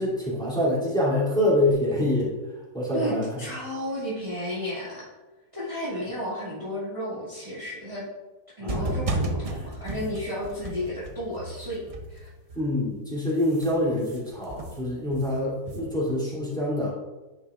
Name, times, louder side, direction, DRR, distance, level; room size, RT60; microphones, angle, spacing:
voice 1, 0.0-2.3 2.7-3.3 8.6-9.0 12.5-16.9, left 1 dB, 5° left, -7 dB, 2.6 m, -25 dB
voice 2, 2.9-5.1 5.5-8.0 8.6-12.3, equal, 20° right, -9 dB, 2.1 m, -33 dB
sound 1, 8.7-13.0 13.3-16.2, right 2 dB, 65° right, 0.3 m, -34 dB
10.0 x 6.8 x 2.4 m, 1.1 s
omnidirectional pair, 1.7 m